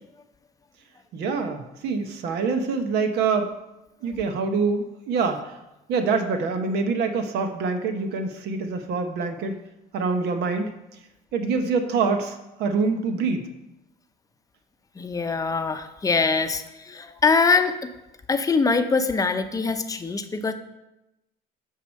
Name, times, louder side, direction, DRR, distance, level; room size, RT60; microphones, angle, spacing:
voice 1, 1.1-3.5 4.0-5.6 5.9-9.6 9.9-10.7 11.3-13.5, right 4 dB, 80° right, 6 dB, 1.0 m, -25 dB
voice 2, 15.0-17.9 18.3-20.5, left 4 dB, 20° left, 9 dB, 0.6 m, -23 dB
6.6 x 4.8 x 6.4 m, 0.93 s
cardioid pair, 110°, 17 cm